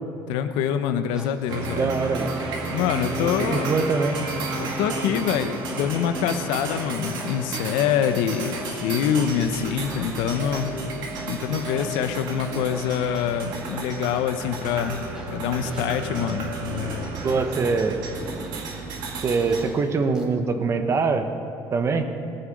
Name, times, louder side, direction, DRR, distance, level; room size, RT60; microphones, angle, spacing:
voice 1, 0.3-1.9 2.7-3.7 4.6-10.7 11.3-15.0 15.3-17.1, left 8 dB, 85° left, 9 dB, 0.8 m, -25 dB
sound 1, 1.1-1.8 2.1-3.3 3.6-3.9 4.1-5.1 5.6-6.3 6.6-8.8 9.1-10.8 11.1-13.8 14.1-14.3 14.6-16.3 16.6-17.6 18.1-18.6 19.1-20.2, right 1 dB, 10° right, 1.8 m, -42 dB
sound 2, 1.5-19.6, right 3 dB, 65° right, 2.1 m, -32 dB
voice 2, 1.7-2.3 3.4-4.2 17.2-18.1 19.2-21.3 21.7-22.1, right 4 dB, 35° right, 7 dB, 1.0 m, -23 dB
18.5 x 7.2 x 5.3 m, 2.7 s
cardioid pair, 120°, 8 cm